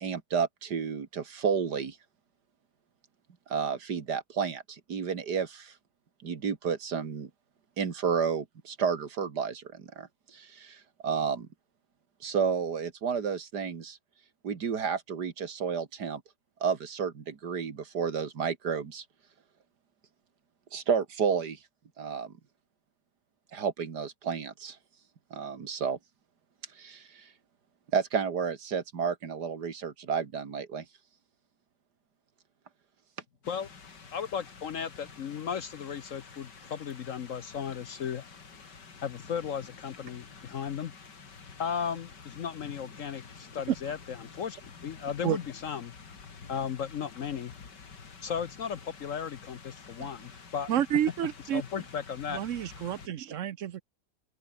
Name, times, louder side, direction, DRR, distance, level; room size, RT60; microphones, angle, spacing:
voice 1, 0.0-2.0 3.5-5.7 6.2-7.3 7.8-11.5 12.2-14.0 14.4-16.2 16.6-19.0 20.7-21.6 22.0-22.3 23.5-24.8 25.3-26.0 26.8-27.3 27.9-30.8, right 6 dB, 70° right, 2.5 m, -31 dB
sound 1, 33.4-53.1, left 5 dB, 85° left, 3.2 m, -49 dB
voice 2, 34.1-38.3 39.0-40.9 41.6-45.9 46.5-47.5 48.2-50.7 51.5-52.4, left 7 dB, 55° left, 1.1 m, -35 dB
voice 3, 50.7-51.6 52.3-53.8, right 10 dB, 55° right, 1.0 m, -29 dB
open air
omnidirectional pair, 1.8 m